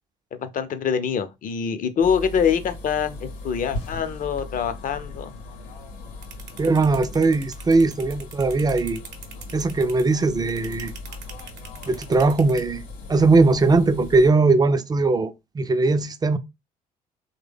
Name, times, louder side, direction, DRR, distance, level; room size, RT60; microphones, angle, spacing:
voice 1, 0.3-5.3, left 7 dB, 45° left, 0.6 m, -25 dB
sound 1, 2.0-14.3, left 2 dB, 80° left, 0.8 m, -38 dB
sound 2, 6.2-12.6, right 7 dB, 65° right, 0.8 m, -41 dB
voice 2, 6.6-9.0 9.5-10.9 11.9-12.8 13.1-16.4, right 3 dB, 20° right, 0.5 m, -19 dB
3.3 x 2.2 x 3.4 m
hypercardioid pair, 55°, 19 cm